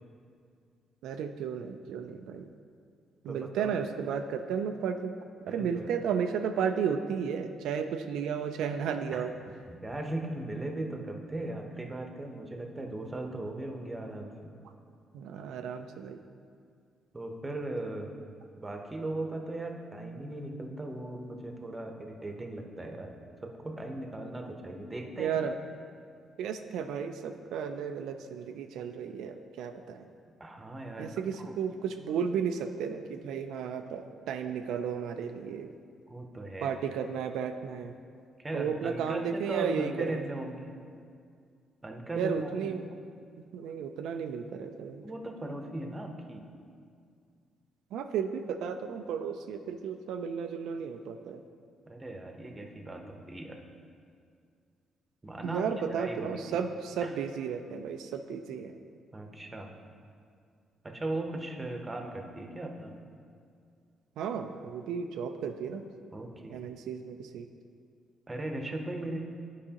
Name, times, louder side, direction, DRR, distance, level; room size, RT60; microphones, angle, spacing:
voice 1, 1.0-2.5 3.2-5.1 5.5-9.3 15.1-16.2 25.2-25.6 26.4-30.1 31.0-35.7 36.6-38.0 38.5-40.2 42.2-42.9 43.5-45.1 47.9-51.4 55.4-58.8 64.2-65.9 66.5-67.5, right 7 dB, 85° right, 6 dB, 0.3 m, -33 dB
voice 2, 3.3-3.7 5.5-5.9 9.1-9.3 9.7-14.5 17.1-18.1 18.6-23.1 23.4-25.4 30.4-31.1 31.4-31.5 36.1-36.7 38.4-40.7 41.8-42.7 45.0-46.4 51.8-53.6 55.2-55.6 55.9-56.4 57.0-57.1 59.1-59.7 60.8-62.9 66.1-66.7 68.3-69.2, right 2 dB, 20° right, 3 dB, 0.8 m, -38 dB
11.0 x 4.7 x 2.9 m, 2.2 s
cardioid pair, 90°, 0 cm